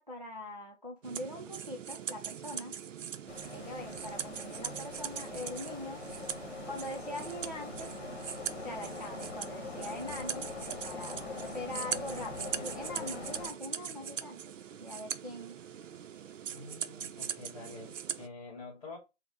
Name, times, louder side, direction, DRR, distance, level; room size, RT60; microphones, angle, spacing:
voice 1, 0.0-2.7 3.5-6.0 6.7-8.0 8.6-15.6, left 1 dB, 35° right, 0.4 m, -42 dB
sound 1, 1.0-18.3, right 8 dB, 90° right, 0.5 m, -41 dB
sound 2, 3.3-13.5, left 4 dB, 60° left, 1.1 m, -43 dB
voice 2, 11.9-13.1 16.5-19.0, left 3 dB, 30° left, 1.9 m, -48 dB
4.5 x 2.0 x 3.5 m
hypercardioid pair, 170°, 37 cm